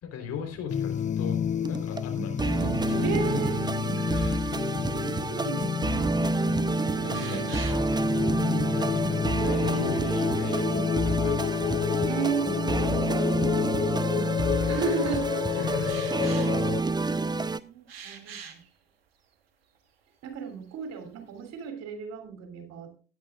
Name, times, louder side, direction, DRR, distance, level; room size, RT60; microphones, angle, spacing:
voice 1, 0.0-3.4 4.0-4.6 5.4-5.6 6.3-7.9 8.7-11.7 15.6-16.1, left 6 dB, 55° left, 4 dB, 3.8 m, -39 dB
sound 1, 0.7-16.8, left 8 dB, 25° left, 0.6 m, -29 dB
sound 2, 1.6-17.6, right 3 dB, 15° right, 0.7 m, -28 dB
voice 2, 3.0-3.5 4.9-6.3 12.0-13.2 13.8-15.8 17.3-18.6 20.2-22.9, right 6 dB, 60° right, 6 dB, 3.1 m, -34 dB
sound 3, 5.8-5.9 6.4-6.5 7.1-8.0 10.2-11.0 12.2-12.3 13.2-13.3 14.4-14.8 15.8-17.2 17.9-18.7 19.3-19.4 19.7-19.8 20.2-20.7 21.1-21.7, right 7 dB, 80° right, 1.4 m, -45 dB
18.0 x 10.5 x 2.4 m, 0.36 s
figure-of-eight pair, 50°, 29 cm